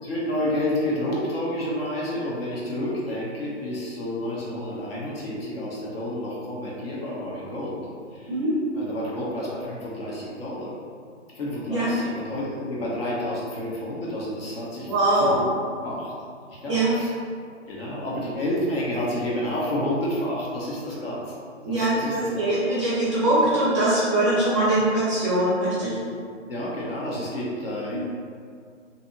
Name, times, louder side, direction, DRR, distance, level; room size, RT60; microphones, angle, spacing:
voice 1, 0.0-7.8 8.1-8.4 8.7-10.7 11.3-15.5 15.8-16.1 16.5-17.1 17.7-21.3 21.7-22.5 26.5-28.0, left 1 dB, 50° left, -6 dB, 0.8 m, -30 dB
voice 2, 14.9-15.4 16.7-16.9 21.6-26.0 27.9-28.0, right 1 dB, 25° right, -9 dB, 0.5 m, -22 dB
2.7 x 2.4 x 2.7 m, 2.2 s
hypercardioid pair, 150°, 37 cm